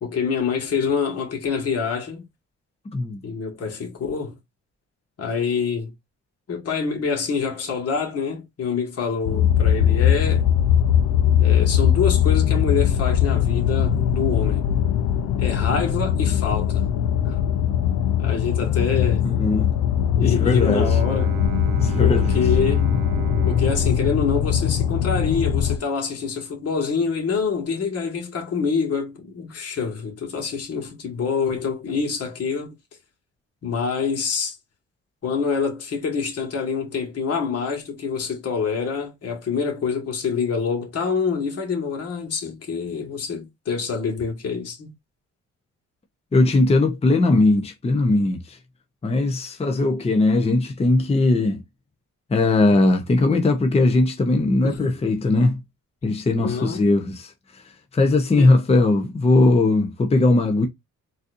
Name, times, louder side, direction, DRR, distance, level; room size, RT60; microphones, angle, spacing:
voice 1, 0.0-2.3 3.2-4.4 5.2-5.9 6.5-10.5 11.4-14.7 15.4-16.8 17.2-17.4 18.2-19.2 20.1-21.3 22.0-22.9 23.4-32.7 33.6-34.6 35.2-44.9 54.6-55.0 56.4-56.9 58.3-58.5, left 5 dB, 55° left, 1.6 m, -26 dB
sound 1, 9.3-25.8, left 9 dB, 85° left, 0.6 m, -20 dB
voice 2, 19.2-19.7 20.2-21.0 21.8-22.4 46.3-48.6 49.0-51.6 52.3-55.6 56.0-60.7, left 2 dB, 20° left, 0.7 m, -19 dB
Bowed string instrument, 20.3-25.2, right 12 dB, 75° right, 0.5 m, -34 dB
4.0 x 2.7 x 2.5 m
cardioid pair, 90°, 30 cm